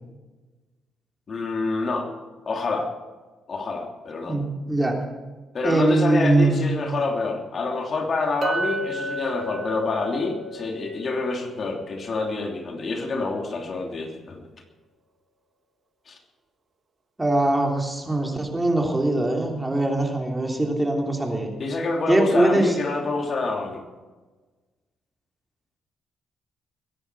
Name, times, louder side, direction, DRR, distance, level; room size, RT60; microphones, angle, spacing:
voice 1, 1.3-2.1 2.4-2.9 3.5-4.4 5.5-14.5 16.1-16.2 21.6-23.8, left 3 dB, 45° left, 2 dB, 3.0 m, -27 dB
voice 2, 4.3-4.9 5.6-6.7 17.2-21.5 22.1-22.7, right 2 dB, 15° right, 1 dB, 3.2 m, -22 dB
Chink clink, 8.4-12.7, right 1 dB, 45° right, 1.7 m, -33 dB
22.5 x 10.5 x 4.8 m, 1.3 s
cardioid pair, 90°, 0 cm